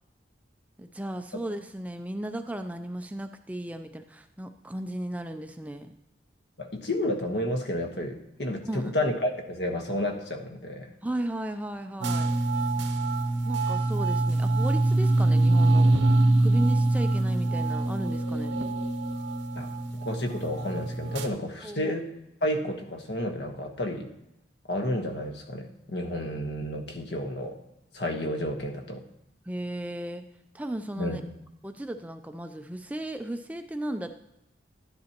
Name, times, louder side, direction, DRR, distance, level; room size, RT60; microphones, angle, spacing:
voice 1, 0.8-5.9 8.6-8.9 11.0-12.3 13.4-15.9 16.4-18.6 21.6-22.0 29.5-30.3 30.5-31.2 31.6-34.1, right 1 dB, 10° right, 7 dB, 0.3 m, -35 dB
voice 2, 6.6-10.9 19.6-19.7 20.0-22.0 22.4-24.1 24.7-27.6 27.9-29.0 31.0-31.2, left 1 dB, 65° left, 4 dB, 1.2 m, -31 dB
sound 1, 12.0-21.3, right 2 dB, 80° right, 0.9 m, -24 dB
12.0 x 10.5 x 2.9 m, 0.86 s
head